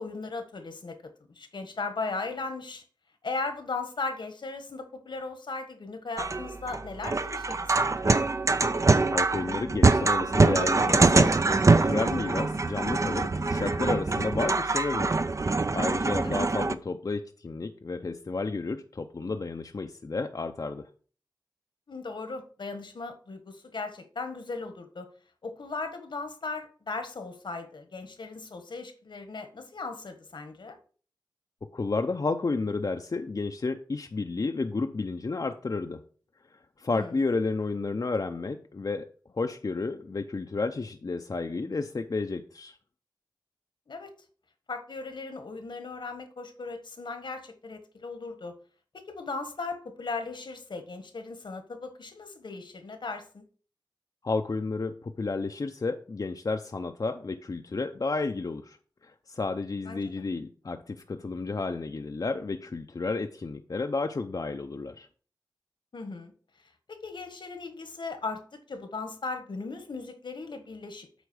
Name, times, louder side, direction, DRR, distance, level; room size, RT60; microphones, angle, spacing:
voice 1, 0.0-2.8 3.2-8.2 16.2-16.4 21.9-25.1 25.4-30.8 36.9-37.1 43.9-44.1 44.7-48.5 48.9-53.4 59.8-60.0 65.9-66.3 66.9-71.1, left 3 dB, 80° left, 8 dB, 1.5 m, -37 dB
sound 1, 6.2-16.7, right 3 dB, 40° right, 0.6 m, -24 dB
voice 2, 9.1-11.3 11.6-15.1 15.7-20.8 31.7-36.0 36.8-39.1 39.3-42.8 54.2-58.8 59.0-65.1, left 3 dB, 50° left, 5 dB, 0.6 m, -31 dB
8.2 x 4.4 x 6.2 m, 0.42 s
wide cardioid pair, 65°, 8 cm